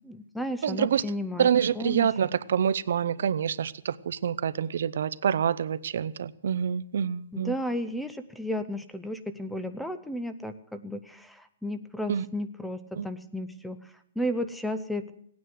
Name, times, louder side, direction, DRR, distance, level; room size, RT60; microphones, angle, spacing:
voice 1, 0.0-1.5 1.7-2.1 7.3-13.8 14.2-15.1, equal, ahead, 0.5 m, -33 dB
voice 2, 0.6-1.1 1.4-7.5 12.1-12.3 13.0-13.1, right 8 dB, 65° right, 0.6 m, -26 dB
17.0 x 9.4 x 7.9 m
hypercardioid pair, 175°, 0 cm